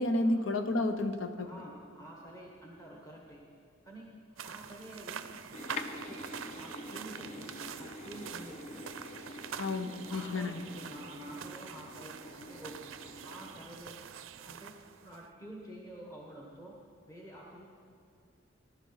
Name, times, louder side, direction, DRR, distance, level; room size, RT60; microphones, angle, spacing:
voice 1, 0.0-1.5 9.6-10.6, left 2 dB, 70° left, 8 dB, 0.9 m, -31 dB
voice 2, 1.4-3.5 3.8-5.3 6.0-6.3 6.6-8.9 10.1-12.9 13.2-14.0 14.4-16.8 17.0-17.7, right 1 dB, 15° left, -2 dB, 1.3 m, -49 dB
sound 1, 4.4-15.3, right 7 dB, 85° right, 0.5 m, -45 dB
sound 2, 5.5-13.7, left 2 dB, 35° left, 0.6 m, -46 dB
19.5 x 11.5 x 4.0 m, 2.2 s
head